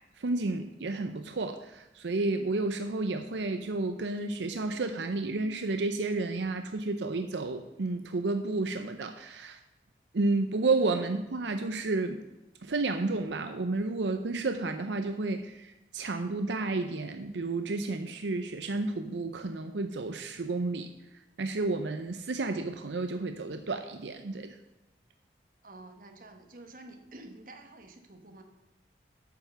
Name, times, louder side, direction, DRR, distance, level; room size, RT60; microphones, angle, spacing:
voice 1, 0.2-9.6 10.1-12.2 12.6-20.9 21.4-24.6, right 3 dB, 85° right, 7 dB, 0.6 m, -31 dB
voice 2, 25.6-28.4, right 2 dB, 50° right, 5 dB, 1.2 m, -49 dB
9.1 x 5.7 x 6.9 m, 0.94 s
head